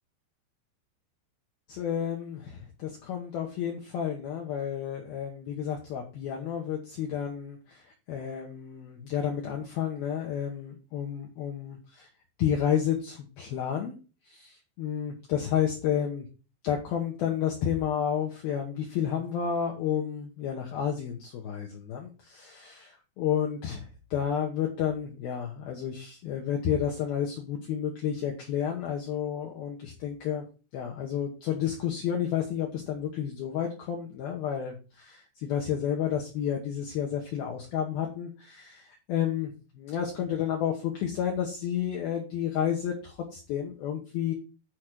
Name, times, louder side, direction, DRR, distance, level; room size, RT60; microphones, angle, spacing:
voice 1, 1.7-12.1 12.4-14.0 14.3-16.3 16.6-30.4 30.7-44.3, left 9 dB, 80° left, 0 dB, 2.2 m, -31 dB
8.4 x 4.9 x 6.1 m, 0.35 s
omnidirectional pair, 6.0 m